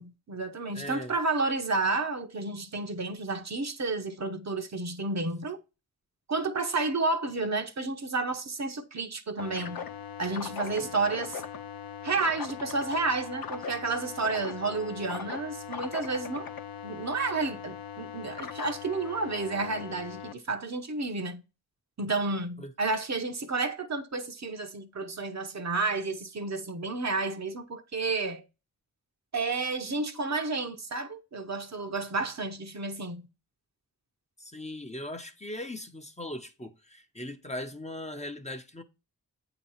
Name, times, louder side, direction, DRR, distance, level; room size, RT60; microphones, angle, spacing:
voice 1, 0.0-5.6 6.3-9.8 10.2-11.4 12.0-16.6 16.8-21.4 22.0-28.4 29.3-33.2, right 3 dB, 50° right, 0.9 m, -31 dB
voice 2, 0.7-1.1 10.8-10.9 22.6-22.7 34.4-38.8, left 1 dB, 20° left, 0.8 m, -39 dB
sound 1, 9.4-20.3, left 7 dB, 85° left, 0.7 m, -40 dB
8.3 x 2.9 x 5.5 m
wide cardioid pair, 95°, 35 cm